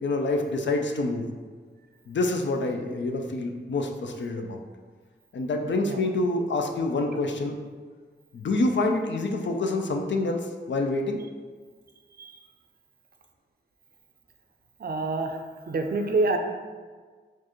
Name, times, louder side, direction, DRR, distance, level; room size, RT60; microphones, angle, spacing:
voice 1, 0.0-1.3 2.1-4.6 5.3-7.6 8.3-11.2, left 2 dB, 70° left, 3 dB, 0.4 m, -27 dB
voice 2, 14.8-15.4 15.7-16.4, right 3 dB, 55° right, 5 dB, 0.4 m, -26 dB
4.4 x 2.4 x 3.0 m, 1.5 s
wide cardioid pair, 70°, 19 cm